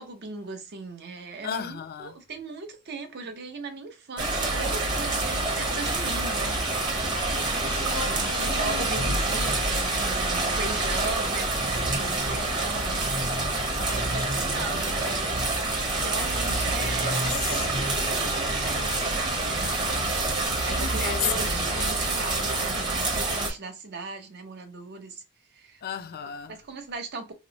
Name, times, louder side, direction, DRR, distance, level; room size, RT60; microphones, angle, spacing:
voice 1, 0.0-6.6 8.1-15.5 15.9-19.7 20.6-25.2 25.5-25.8 26.5-27.3, right 3 dB, 50° right, 0.7 m, -38 dB
voice 2, 1.4-2.1 7.7-9.3 13.8-14.5 16.5-17.8 20.6-21.9 25.8-26.5, left 8 dB, 45° left, 0.4 m, -35 dB
sound 1, 4.2-23.5, right 2 dB, 20° right, 0.9 m, -27 dB
3.0 x 2.0 x 3.8 m
head